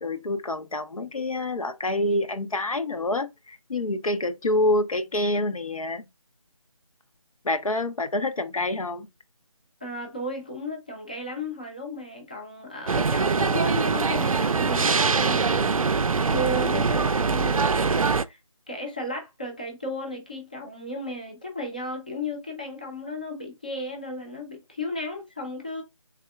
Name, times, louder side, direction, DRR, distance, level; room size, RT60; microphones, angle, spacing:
voice 1, 0.0-6.0 7.4-9.1, left 1 dB, 85° left, 0.6 m, -27 dB
voice 2, 9.8-18.4 18.7-25.8, left 1 dB, 15° left, 0.4 m, -34 dB
sound 1, 12.9-18.2, right 4 dB, 85° right, 0.4 m, -23 dB
3.5 x 3.2 x 2.2 m
figure-of-eight pair, 160°, 17 cm